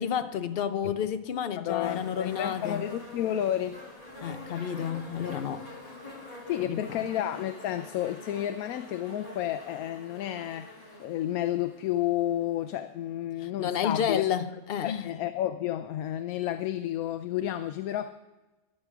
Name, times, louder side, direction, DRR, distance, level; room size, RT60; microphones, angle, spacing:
voice 1, 0.0-2.9 4.2-5.7 6.6-7.1 13.4-15.2, left 8 dB, 55° left, 0.7 m, -31 dB
voice 2, 1.6-3.8 6.5-10.7 11.0-14.2 14.8-18.1, left 12 dB, 85° left, 1.0 m, -31 dB
sound 1, 1.8-12.9 13.8-13.9, left 2 dB, 25° left, 3.1 m, -46 dB
14.0 x 11.0 x 3.6 m
omnidirectional pair, 1.5 m